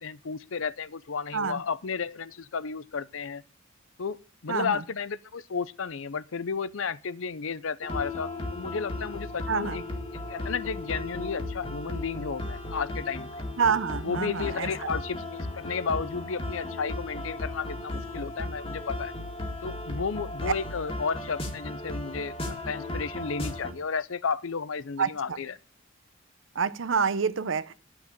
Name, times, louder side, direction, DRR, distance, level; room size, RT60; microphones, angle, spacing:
voice 1, 0.0-3.4 4.0-9.8 10.1-13.3 14.0-19.1 19.6-25.5, left 5 dB, 80° left, 0.6 m, -33 dB
voice 2, 4.5-4.8 9.5-9.8 13.6-14.9 25.0-25.4 26.5-27.7, right 6 dB, 75° right, 0.7 m, -28 dB
sound 1, 7.8-23.7, left 2 dB, 30° left, 2.0 m, -36 dB
10.5 x 6.8 x 9.0 m
head